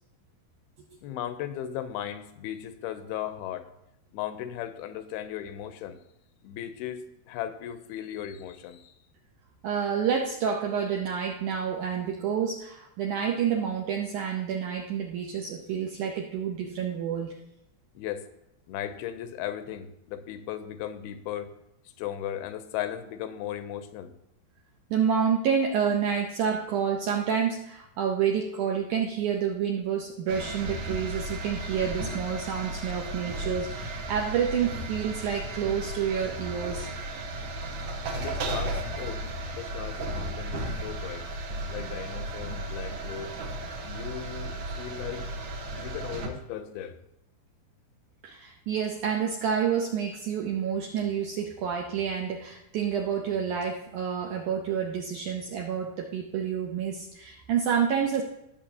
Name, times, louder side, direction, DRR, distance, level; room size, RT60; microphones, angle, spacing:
voice 1, 1.0-3.7 4.1-6.0 6.4-8.9 18.0-18.3 18.7-21.5 22.0-24.1 38.1-39.2 39.6-41.3 41.7-43.3 43.8-45.3 45.8-47.0, left 10 dB, 85° left, 10 dB, 2.5 m, -36 dB
voice 2, 9.6-17.4 24.9-36.9 48.2-58.2, right 7 dB, 80° right, 2 dB, 1.8 m, -29 dB
sound 1, 30.3-46.3, right 1 dB, 65° right, 2.0 m, -35 dB
18.5 x 7.0 x 2.8 m, 0.86 s
omnidirectional pair, 4.5 m